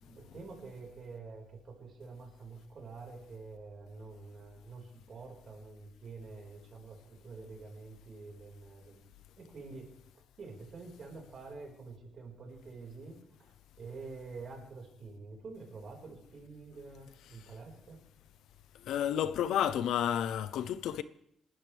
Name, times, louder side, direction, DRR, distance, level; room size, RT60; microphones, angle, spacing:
voice 1, 0.0-9.0 9.4-9.9 10.4-18.0, right 4 dB, 40° right, 4.9 m, -48 dB
voice 2, 18.8-21.0, left 10 dB, 85° left, 0.8 m, -31 dB
28.5 x 13.0 x 3.4 m
cardioid pair, 160°, 0 cm